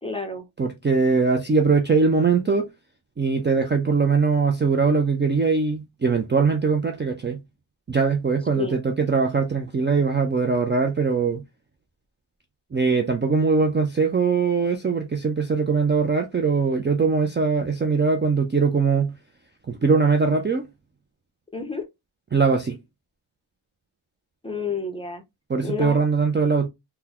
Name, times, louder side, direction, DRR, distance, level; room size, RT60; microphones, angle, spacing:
voice 1, 0.0-0.4 8.5-8.8 21.5-21.9 24.4-25.2 25.6-26.0, left 4 dB, 10° left, 0.7 m, -29 dB
voice 2, 0.6-2.7 3.2-7.4 7.9-11.4 12.7-19.1 19.7-20.6 22.3-22.8 25.5-26.7, right 4 dB, 25° right, 0.4 m, -21 dB
3.8 x 2.2 x 2.9 m
wide cardioid pair, 115°, 48 cm